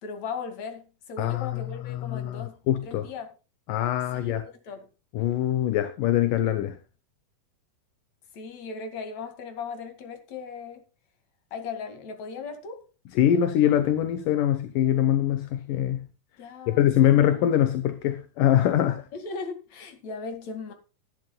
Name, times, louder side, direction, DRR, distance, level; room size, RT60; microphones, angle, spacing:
voice 1, 0.0-2.6 2.8-3.3 4.1-4.9 8.3-10.8 11.5-12.8 16.4-17.3 19.1-20.7, left 5 dB, 50° left, 3.2 m, -37 dB
voice 2, 1.2-3.1 3.7-4.4 5.1-6.8 13.2-16.1 16.7-19.1, left 11 dB, 70° left, 2.4 m, -23 dB
18.5 x 11.0 x 2.3 m
omnidirectional pair, 4.2 m